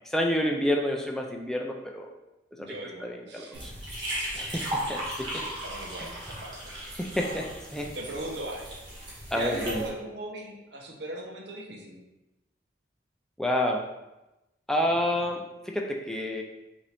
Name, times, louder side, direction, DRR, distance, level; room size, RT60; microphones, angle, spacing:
voice 1, 0.1-2.1 2.6-2.7 3.0-3.7 4.3-5.4 7.0-7.5 7.7-7.9 9.3-9.8 13.4-13.9 14.7-15.4 15.7-16.4, left 1 dB, 5° left, 0 dB, 0.3 m, -29 dB
voice 2, 2.6-3.6 5.2-6.6 6.8-7.5 7.8-12.0 14.9-15.0, right 1 dB, 65° right, 0 dB, 0.8 m, -39 dB
sound 1, 3.5-9.9, right 1 dB, 25° right, 1.0 m, -36 dB
5.4 x 2.6 x 3.3 m, 0.98 s
head